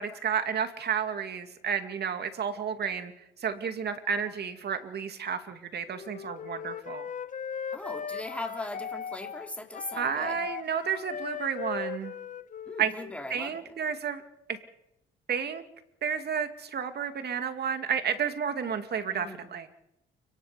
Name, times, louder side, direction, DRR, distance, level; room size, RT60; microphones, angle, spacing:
voice 1, 0.0-3.1 3.4-7.1 10.0-12.1 12.8-12.9 13.3-14.2 14.5-14.6 15.3-15.6 16.0-19.7, right 7 dB, 55° right, 8 dB, 2.4 m, -31 dB
Wind instrument woodwind instrument, 5.9-13.4, left 7 dB, 40° left, 0.9 m, -38 dB
voice 2, 7.7-10.5 12.7-13.7 19.1-19.5, left 1 dB, 5° left, 3 dB, 3.6 m, -39 dB
30.0 x 18.0 x 5.2 m, 0.83 s
cardioid pair, 90°, 20 cm